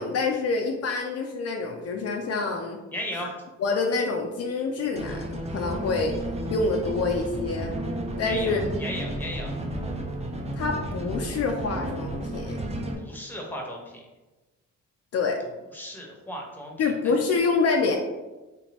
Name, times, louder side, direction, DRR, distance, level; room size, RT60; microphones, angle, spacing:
voice 1, 0.0-2.8 3.6-6.1 6.5-7.7 8.2-8.6 10.5-12.6 15.1-15.4 16.8-18.0, left 4 dB, 55° left, 2 dB, 0.5 m, -26 dB
voice 2, 2.9-3.4 8.2-9.5 13.0-14.0 15.7-16.7, left 1 dB, 5° left, 0 dB, 0.9 m, -35 dB
sound 1, 5.0-13.0, right 1 dB, 20° right, 0.5 m, -32 dB
3.3 x 2.9 x 3.0 m, 1.1 s
cardioid pair, 90°, 30 cm